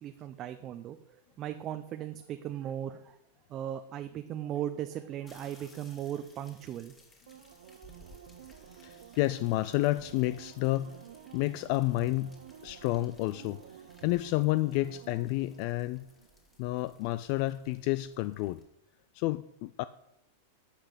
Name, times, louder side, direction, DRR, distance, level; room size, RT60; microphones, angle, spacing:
voice 1, 0.0-3.2 3.5-6.9, right 11 dB, 30° right, 0.6 m, -38 dB
sound 1, 5.3-18.6, left 1 dB, 15° left, 2.2 m, -60 dB
sound 2, 7.3-16.6 17.0-17.1, right 9 dB, 80° right, 1.0 m, -52 dB
voice 2, 8.8-11.0 11.3-12.4 12.6-13.6 14.0-16.1 16.6-18.6 19.1-19.8, left 18 dB, 50° left, 0.4 m, -30 dB
12.0 x 5.9 x 8.1 m
supercardioid pair, 145°, 0 cm